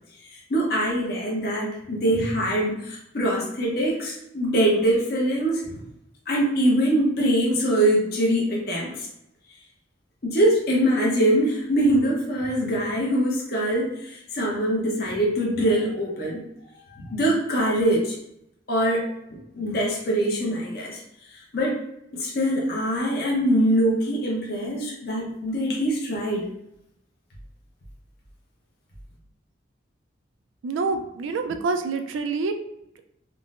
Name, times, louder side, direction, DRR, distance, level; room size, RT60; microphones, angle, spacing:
voice 1, 0.3-5.8 6.3-9.1 10.2-16.4 17.0-18.2 18.7-21.0 21.5-21.8 22.1-26.5, right 1 dB, 50° left, -3 dB, 0.6 m, -23 dB
voice 2, 30.6-32.5, right 4 dB, 85° right, 7 dB, 0.3 m, -26 dB
3.6 x 2.0 x 2.4 m, 0.81 s
head